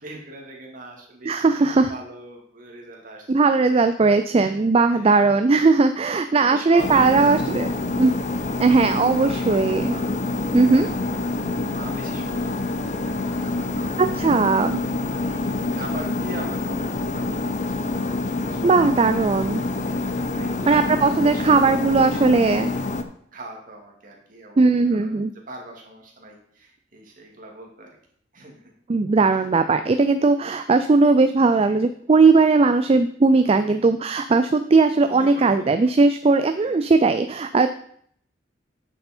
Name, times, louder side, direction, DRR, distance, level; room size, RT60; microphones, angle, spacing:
voice 1, 0.0-3.6 4.4-4.5 4.9-5.2 6.4-19.2 19.8-21.6 22.4-25.2 25.5-27.9 28.3-28.7 35.1-35.8 36.5-36.9, right 2 dB, 50° right, 0 dB, 2.3 m, -42 dB
voice 2, 1.3-1.9 3.3-7.7 8.0-8.1 8.6-10.0 10.5-10.9 14.2-14.8 18.6-19.6 20.7-22.7 24.6-25.3 28.9-37.7, right 3 dB, 35° right, 9 dB, 0.4 m, -18 dB
sound 1, 6.8-23.0, left 2 dB, 40° left, 0.7 m, -27 dB
9.0 x 6.8 x 4.4 m, 0.62 s
head